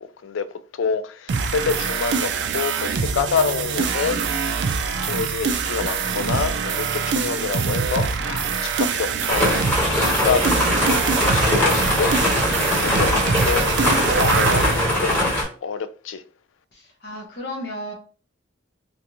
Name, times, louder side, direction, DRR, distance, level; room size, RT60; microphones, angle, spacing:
voice 1, 0.7-4.6 4.8-9.6 9.9-14.7 15.0-15.3 15.6-16.2, left 5 dB, 80° left, 0.4 m, -27 dB
sound 1, 1.3-14.8, right 5 dB, 60° right, 0.3 m, -24 dB
sound 2, 9.3-15.4, left 1 dB, 10° left, 1.1 m, -21 dB
voice 2, 16.7-17.9, left 1 dB, 55° left, 1.0 m, -33 dB
3.3 x 2.6 x 2.9 m
head